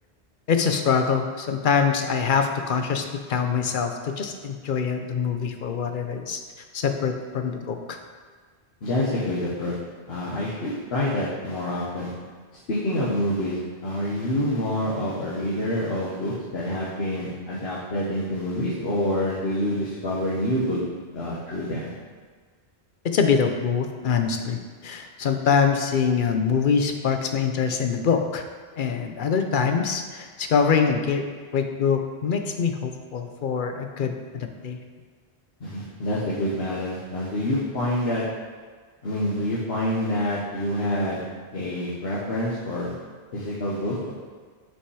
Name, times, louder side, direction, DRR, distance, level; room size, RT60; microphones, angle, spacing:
voice 1, 0.5-6.4 6.7-8.0 23.0-28.5 28.8-31.2 31.5-34.8, left 6 dB, 55° left, 5 dB, 0.8 m, -24 dB
voice 2, 8.8-9.8 10.1-12.1 12.5-20.8 21.1-21.9 35.6-38.2 39.0-41.2 41.5-42.9 43.3-44.1, left 1 dB, 80° left, -7 dB, 1.4 m, -27 dB
6.2 x 5.6 x 4.8 m, 1.5 s
omnidirectional pair, 1.0 m